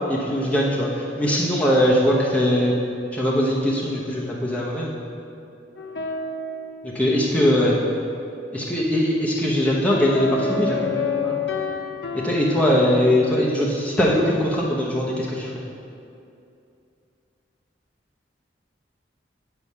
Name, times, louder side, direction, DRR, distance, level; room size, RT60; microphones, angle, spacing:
voice 1, 0.1-2.8 3.1-5.0 6.8-7.8 8.5-10.9 11.2-11.4 12.2-15.5, equal, 10° left, -5 dB, 0.8 m, -21 dB
sound 1, 5.8-7.4 9.9-13.1, left 4 dB, 65° left, 0.8 m, -29 dB
8.9 x 4.8 x 5.5 m, 2.6 s
head